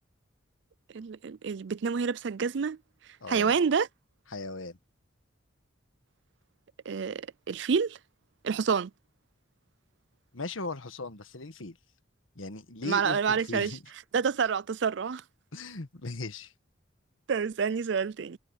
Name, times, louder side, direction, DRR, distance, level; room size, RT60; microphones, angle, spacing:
voice 1, 0.9-2.8 3.3-3.9 6.9-8.0 8.4-8.9 12.8-13.7 14.1-15.2 17.3-18.4, right 6 dB, 65° right, 0.4 m, -28 dB
voice 2, 3.2-3.5 4.3-4.8 10.3-11.8 12.3-13.8 15.5-16.5, left 3 dB, 90° left, 1.6 m, -38 dB
head